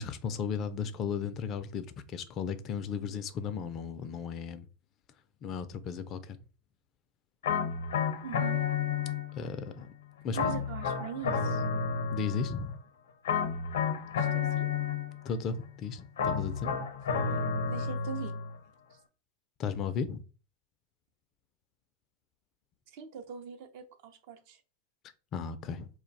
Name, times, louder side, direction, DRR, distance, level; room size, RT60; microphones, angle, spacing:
voice 1, 0.0-4.7 5.4-6.4 9.3-9.9 10.2-10.6 12.1-12.8 15.2-16.8 19.6-20.2 25.3-25.9, left 6 dB, 40° left, 0.3 m, -35 dB
sound 1, 7.4-9.5 10.3-12.7 13.2-15.3 16.2-18.5, left 6 dB, 80° left, 0.7 m, -31 dB
voice 2, 8.2-8.7 10.3-11.6 14.2-14.7 17.3-18.4 22.9-24.6, right 8 dB, 60° right, 0.6 m, -42 dB
2.3 x 2.1 x 3.9 m
hypercardioid pair, 100°, 0 cm